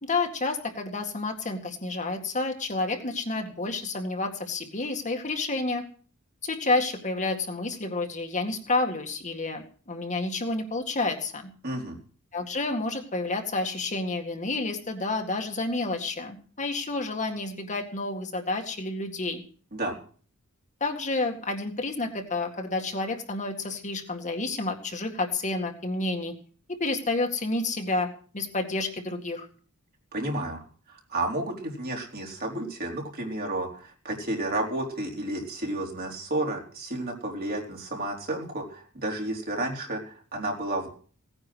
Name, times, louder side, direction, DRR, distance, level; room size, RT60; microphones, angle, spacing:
voice 1, 0.0-5.8 6.4-11.4 12.3-19.4 20.8-26.3 26.8-28.1 28.3-29.5, left 2 dB, 35° left, 4 dB, 2.0 m, -30 dB
voice 2, 11.6-12.0 19.7-20.0 30.1-30.6 30.9-40.9, right 1 dB, 45° right, 1 dB, 4.2 m, -31 dB
17.5 x 9.9 x 6.2 m, 0.43 s
head